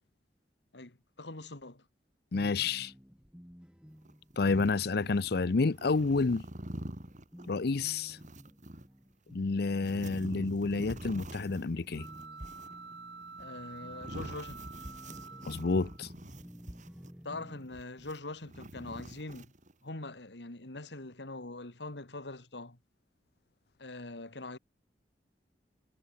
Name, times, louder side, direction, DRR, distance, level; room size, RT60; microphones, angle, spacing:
voice 1, 0.7-1.9 13.4-14.7 17.2-19.5 19.8-22.8 23.8-24.6, left 2 dB, 80° left, 2.4 m, -43 dB
voice 2, 2.3-2.9 4.4-6.4 7.5-8.2 9.3-12.1 15.5-16.1, left 3 dB, 65° left, 0.6 m, -29 dB
sound 1, 2.3-17.8, equal, 5° right, 2.1 m, -53 dB
sound 2, 4.0-5.4 5.7-8.9 9.6-17.2 17.7-19.7, right 1 dB, 45° right, 4.6 m, -46 dB
sound 3, 11.9-16.0, right 4 dB, 75° right, 6.0 m, -48 dB
head